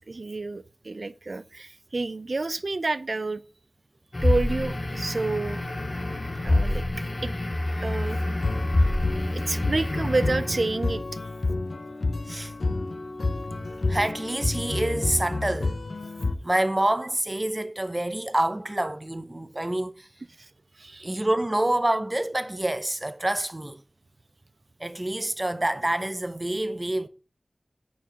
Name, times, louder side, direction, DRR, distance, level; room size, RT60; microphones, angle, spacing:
voice 1, 0.0-3.4 4.2-5.6 6.4-7.3 7.8-8.4 9.3-11.1 13.7-13.8 20.4-20.5 20.8-21.2, right 3 dB, 60° right, 0.4 m, -29 dB
sound 1, 4.1-10.8, left 1 dB, 40° left, 0.8 m, -27 dB
sound 2, 8.1-16.3, left 3 dB, 70° left, 0.7 m, -30 dB
voice 2, 13.9-15.7 16.4-20.1 21.0-23.8 24.8-27.1, right 1 dB, 25° right, 0.8 m, -27 dB
9.2 x 4.5 x 5.5 m
wide cardioid pair, 50°, 0 cm